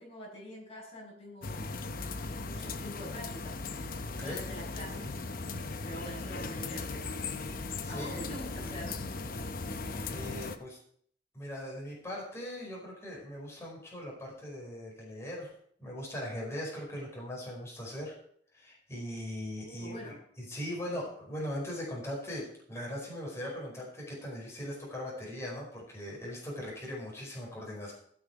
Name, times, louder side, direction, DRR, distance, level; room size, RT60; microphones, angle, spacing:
voice 1, 0.0-1.8 2.4-3.6 4.2-5.1 5.8-7.2 7.9-9.0 19.6-20.2, equal, 35° left, -3 dB, 5.9 m, -45 dB
sound 1, 1.4-10.6, left 3 dB, 55° left, 0.8 m, -38 dB
voice 2, 7.8-8.2 10.1-10.8 11.3-15.5 15.8-18.1 18.5-27.9, left 1 dB, 15° left, -4 dB, 5.0 m, -40 dB
16.0 x 7.0 x 4.8 m, 0.62 s
head